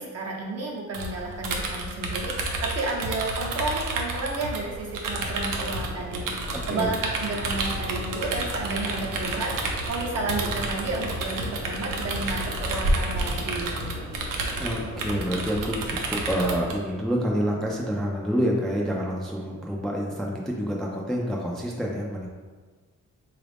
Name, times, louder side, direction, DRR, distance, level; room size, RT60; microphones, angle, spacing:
voice 1, 0.0-13.9, right 2 dB, 55° right, -1 dB, 0.8 m, -32 dB
sound 1, 0.9-16.7, right 2 dB, 90° right, 0.6 m, -30 dB
sound 2, 5.1-15.5, left 2 dB, 55° left, 0.9 m, -40 dB
voice 2, 6.5-6.9 14.6-22.3, equal, ahead, -2 dB, 0.3 m, -28 dB
4.0 x 2.4 x 3.3 m, 1.4 s
wide cardioid pair, 135°, 31 cm